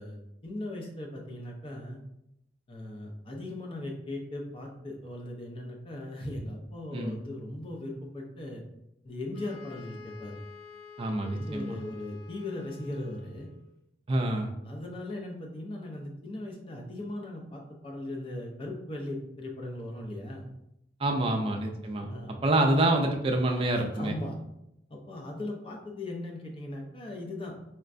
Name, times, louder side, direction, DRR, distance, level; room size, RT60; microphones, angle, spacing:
voice 1, 0.0-2.0 2.7-8.6 9.0-10.3 11.2-13.5 14.2-20.5 22.1-22.3 23.9-24.4 24.9-27.5, left 1 dB, 30° left, 0 dB, 0.5 m, -38 dB
sound 1, 9.3-13.7, left 5 dB, 65° left, 0.8 m, -49 dB
voice 2, 11.0-11.8 14.1-14.5 21.0-22.1 22.4-24.2, right 1 dB, 30° right, 2 dB, 0.4 m, -27 dB
4.3 x 2.1 x 2.5 m, 0.83 s
head